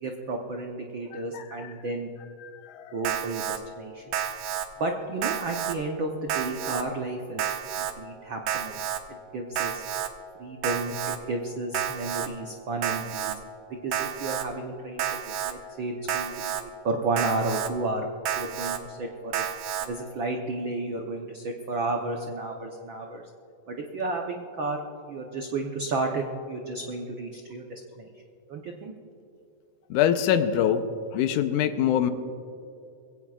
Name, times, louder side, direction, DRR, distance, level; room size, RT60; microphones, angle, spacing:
voice 1, 0.0-2.1 2.9-4.2 4.8-8.8 9.1-9.8 10.4-13.3 13.8-18.1 18.4-19.4 19.8-23.2 23.7-24.8 25.1-28.1 28.5-28.9, right 2 dB, 90° right, 2 dB, 1.0 m, -32 dB
voice 2, 2.4-2.9 29.9-30.8 31.1-32.1, left 10 dB, 85° left, 9 dB, 2.2 m, -24 dB
Alarm, 3.0-3.6 4.1-4.7 5.2-5.8 6.3-6.8 7.4-7.9 8.5-9.0 9.6-10.1 10.6-11.2 11.7-12.3 12.8-13.4 13.9-14.5 15.0-15.5 16.1-16.6 17.2-17.7 18.3-18.8 19.3-19.9, right 10 dB, 70° right, 1.5 m, -30 dB
22.0 x 16.5 x 2.4 m, 2.6 s
omnidirectional pair, 3.5 m